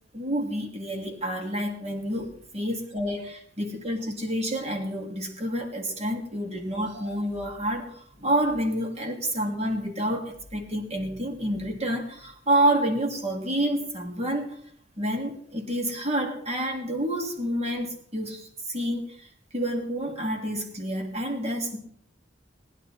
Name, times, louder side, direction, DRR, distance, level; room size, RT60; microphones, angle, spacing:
voice 1, 0.1-14.6 15.0-21.8, right 1 dB, 35° right, 2 dB, 2.6 m, -29 dB
19.5 x 10.5 x 4.3 m, 0.62 s
head